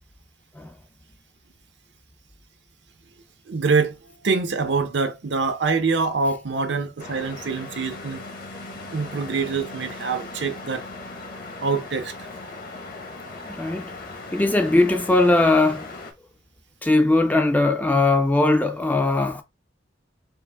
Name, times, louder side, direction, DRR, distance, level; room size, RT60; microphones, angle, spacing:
voice 1, 3.5-4.0 4.2-8.2 8.9-10.9 11.6-12.3, right 4 dB, 65° right, 0.7 m, -25 dB
sound 1, 7.0-16.1, left 3 dB, 50° left, 1.0 m, -38 dB
voice 2, 13.5-13.9 14.3-15.9 16.8-19.4, left 2 dB, 10° left, 0.4 m, -19 dB
4.5 x 2.1 x 3.4 m
head